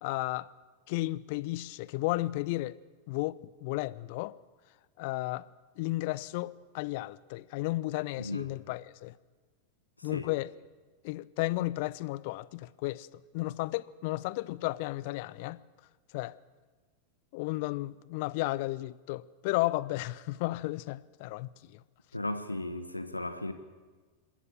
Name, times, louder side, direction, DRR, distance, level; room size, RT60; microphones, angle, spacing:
voice 1, 0.0-0.5 0.9-2.7 3.1-4.4 5.0-5.5 5.8-9.1 10.0-10.5 11.0-13.1 13.3-15.6 16.1-16.4 17.3-21.7, left 19 dB, 50° left, 0.6 m, -33 dB
voice 2, 8.2-8.5 10.0-10.3 22.1-23.5, left 1 dB, 85° left, 1.2 m, -36 dB
27.0 x 13.5 x 7.4 m
figure-of-eight pair, 90°, 0 cm